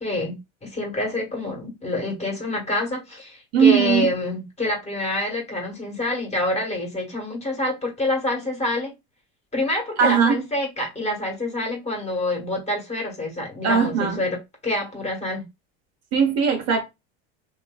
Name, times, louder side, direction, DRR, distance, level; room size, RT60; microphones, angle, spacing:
voice 1, 0.0-8.9 9.5-14.4 14.6-15.4, left 1 dB, 20° left, 1.4 m, -27 dB
voice 2, 3.5-4.1 10.0-10.4 13.6-14.2 16.1-16.8, right 6 dB, 50° right, 1.0 m, -19 dB
3.0 x 2.6 x 2.3 m
supercardioid pair, 115°, 33 cm